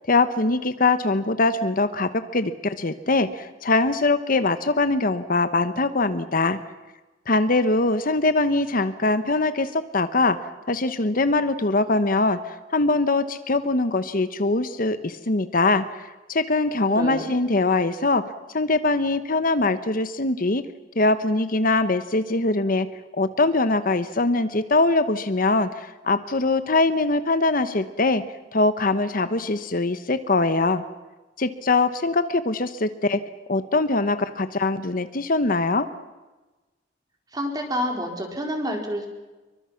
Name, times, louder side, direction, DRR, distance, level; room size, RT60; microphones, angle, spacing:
voice 1, 0.1-6.6 7.3-10.4 10.7-18.2 18.5-20.6 21.0-22.9 23.2-28.2 28.5-30.8 31.4-33.2 33.5-35.9, left 2 dB, 50° left, 11 dB, 1.1 m, -22 dB
voice 2, 16.9-17.3 37.3-39.1, equal, 20° right, 2 dB, 4.7 m, -28 dB
27.5 x 24.0 x 5.9 m, 1.2 s
head